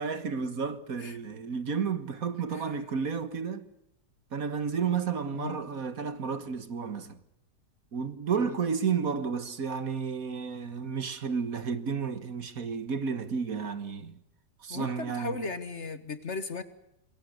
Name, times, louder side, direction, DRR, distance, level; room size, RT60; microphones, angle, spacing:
voice 1, 0.0-3.7 4.3-7.2 7.9-14.2 14.6-15.4, right 6 dB, 55° right, 1.8 m, -32 dB
voice 2, 14.7-16.6, left 4 dB, 45° left, 1.5 m, -37 dB
27.0 x 22.0 x 6.7 m
omnidirectional pair, 1.8 m